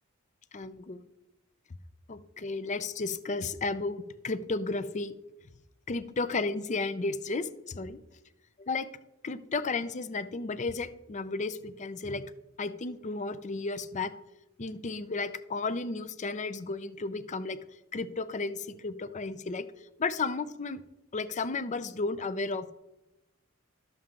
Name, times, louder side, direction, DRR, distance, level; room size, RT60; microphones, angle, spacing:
voice 1, 0.5-1.0 2.1-5.1 5.9-8.0 8.6-8.9 9.2-12.2 12.6-14.1 14.6-17.6 17.9-19.7 20.0-20.8 21.1-22.7, left 3 dB, 35° left, 14 dB, 0.5 m, -33 dB
12.0 x 7.4 x 3.7 m, 0.98 s
head